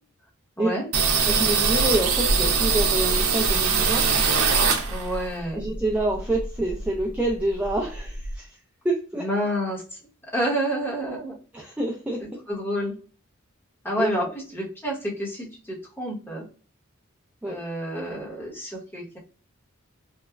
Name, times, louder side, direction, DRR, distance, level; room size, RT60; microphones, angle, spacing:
sound 1, 0.9-5.3 5.6-7.0 7.3-7.4 7.6-8.4, right 5 dB, 80° right, 0.6 m, -22 dB
voice 1, 1.2-4.1 5.5-8.6 8.8-9.2 11.5-12.4 14.0-14.3 17.4-17.6, right 1 dB, 5° right, -1 dB, 0.3 m, -27 dB
voice 2, 4.9-5.6 9.2-9.8 10.3-11.4 12.2-12.9 13.8-14.2 14.5-16.4 17.5-19.2, equal, 10° left, -4 dB, 0.9 m, -29 dB
3.1 x 2.1 x 2.2 m, 0.38 s
head